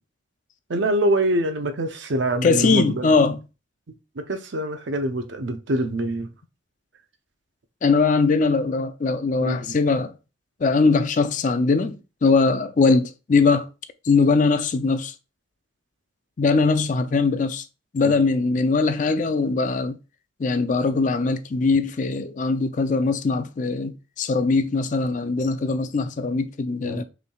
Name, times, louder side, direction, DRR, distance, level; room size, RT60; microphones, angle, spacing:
voice 1, 0.7-3.2 4.2-6.3 9.4-9.8 18.0-18.2 26.8-27.0, right 1 dB, 65° right, 0.6 m, -25 dB
voice 2, 2.4-3.4 7.8-10.1 10.6-13.7 14.0-15.1 16.4-17.6 17.9-20.0 20.4-27.0, left 4 dB, 40° left, 0.4 m, -21 dB
5.3 x 3.3 x 2.3 m
head